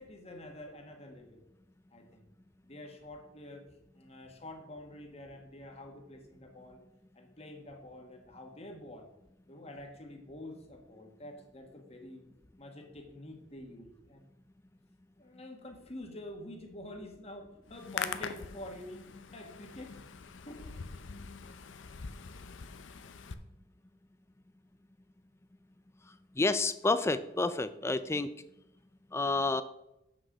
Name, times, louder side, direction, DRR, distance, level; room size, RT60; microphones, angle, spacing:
voice 1, 0.0-1.4 1.9-2.2 2.6-3.6 3.9-6.8 7.1-9.1 9.5-12.2 12.6-14.3 15.2-20.0 20.4-20.8, left 1 dB, 35° left, 3 dB, 1.5 m, -47 dB
Hands, 17.7-23.3, left 6 dB, 75° left, 0.6 m, -43 dB
voice 2, 26.4-28.3 29.1-29.6, left 3 dB, 15° left, 13 dB, 0.4 m, -29 dB
7.7 x 6.2 x 4.9 m, 0.87 s
head